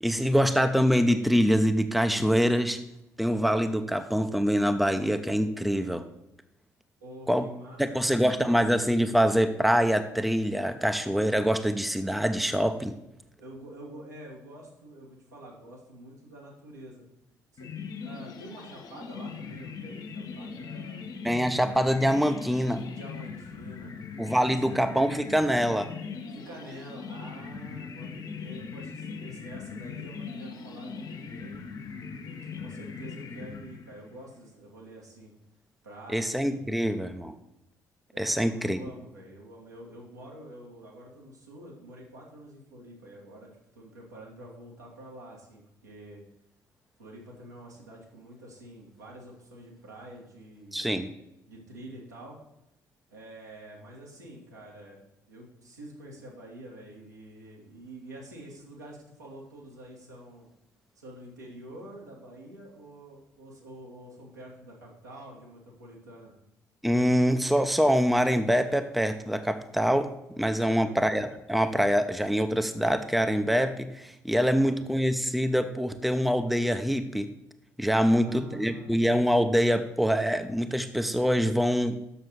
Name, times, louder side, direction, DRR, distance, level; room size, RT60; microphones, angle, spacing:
voice 1, 0.0-2.8 3.2-6.0 7.3-7.5 7.8-13.0 21.2-22.8 24.2-25.9 36.1-37.3 38.2-38.8 50.7-51.1 66.8-77.3 77.8-82.0, equal, ahead, 8 dB, 0.7 m, -25 dB
voice 2, 7.0-7.8 8.0-8.5 13.4-17.0 17.5-21.1 22.9-23.9 24.4-24.8 26.3-31.6 32.3-35.3 35.8-36.8 38.1-46.2 47.0-50.8 51.5-52.4 53.1-60.5 61.0-66.3 70.6-71.0 74.4-74.8 78.0-78.9, right 1 dB, 80° right, -4 dB, 1.8 m, -47 dB
sound 1, 17.6-34.2, left 5 dB, 45° left, 0.9 m, -40 dB
6.5 x 6.5 x 6.3 m, 0.86 s
figure-of-eight pair, 45°, 9 cm